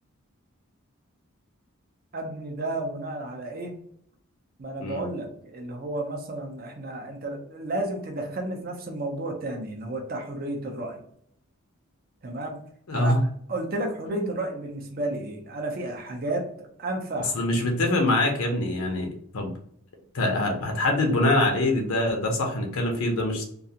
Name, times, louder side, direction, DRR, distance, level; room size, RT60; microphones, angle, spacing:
voice 1, 2.1-3.7 4.6-11.0 12.2-12.6 12.9-13.1 13.5-17.3, right 2 dB, 40° right, 2 dB, 0.5 m, -32 dB
voice 2, 12.9-13.2 14.1-14.3 17.3-19.1 19.3-19.5 20.1-23.4, left 1 dB, 85° left, 2 dB, 0.6 m, -24 dB
2.4 x 2.3 x 2.7 m, 0.66 s
head